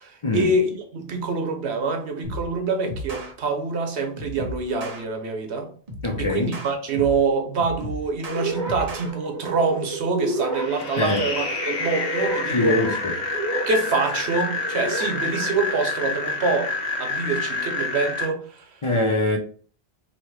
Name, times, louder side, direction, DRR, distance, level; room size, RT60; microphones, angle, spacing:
voice 1, 0.0-5.7 6.2-12.8 13.7-16.7 17.0-18.8, right 4 dB, 90° right, 1.1 m, -25 dB
sound 1, 2.2-2.5 2.9-3.3 4.2-5.0 5.9-7.3 7.6-9.1, equal, 40° right, 0.9 m, -34 dB
voice 2, 6.0-6.5 11.0-11.2 12.5-13.1 18.8-19.4, left 2 dB, 40° left, 0.5 m, -23 dB
sound 2, 8.3-16.2, right 2 dB, 20° right, 1.3 m, -32 dB
sound 3, 10.5-18.3, left 4 dB, 80° left, 1.2 m, -28 dB
3.0 x 2.9 x 4.6 m
omnidirectional pair, 1.1 m